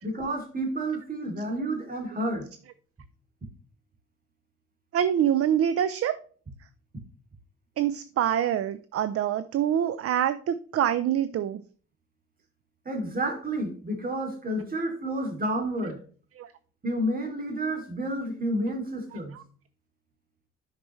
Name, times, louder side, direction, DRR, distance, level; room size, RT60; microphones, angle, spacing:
voice 1, 0.0-2.5 12.8-16.0 16.8-19.4, right 1 dB, 30° right, 3 dB, 2.7 m, -30 dB
voice 2, 4.9-6.2 7.8-11.6 16.4-16.5 19.3-19.4, right 10 dB, 50° right, 14 dB, 0.5 m, -25 dB
9.5 x 5.9 x 3.1 m, 0.43 s
cardioid pair, 90°, 30 cm